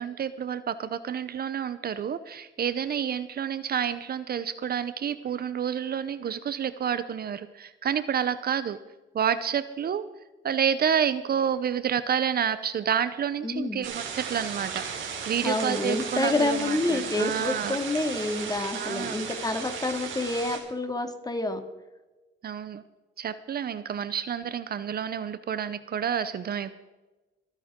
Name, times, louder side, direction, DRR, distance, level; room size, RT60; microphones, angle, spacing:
voice 1, 0.0-8.8 9.1-10.0 10.4-14.8 15.3-17.8 18.7-19.3 22.4-22.8 23.2-26.7, right 8 dB, 50° right, 14 dB, 0.7 m, -29 dB
voice 2, 13.4-13.9 15.4-21.6, left 2 dB, 20° left, 6 dB, 2.2 m, -28 dB
sound 1, 13.8-20.6, right 6 dB, 75° right, 3.4 m, -35 dB
25.0 x 10.0 x 3.7 m, 1.1 s
cardioid pair, 90°, 20 cm